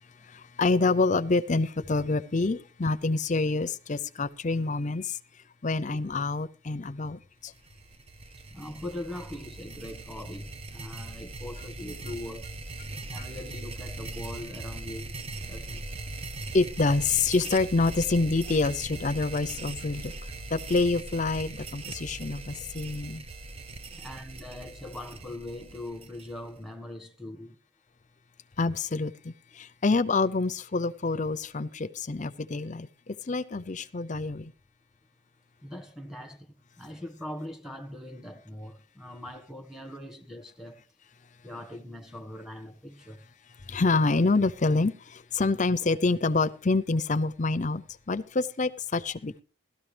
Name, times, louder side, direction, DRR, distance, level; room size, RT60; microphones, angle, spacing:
voice 1, 0.3-5.2 5.6-7.5 13.2-13.3 16.5-20.1 20.5-23.2 28.6-34.5 43.7-49.4, left 3 dB, 40° left, 0.6 m, -27 dB
sound 1, 7.5-26.6, right 2 dB, 30° right, 0.6 m, -40 dB
voice 2, 8.5-12.6 13.1-15.9 23.9-27.6 35.6-40.8 41.4-43.2, left 1 dB, 5° right, 1.4 m, -41 dB
17.0 x 13.0 x 3.3 m
head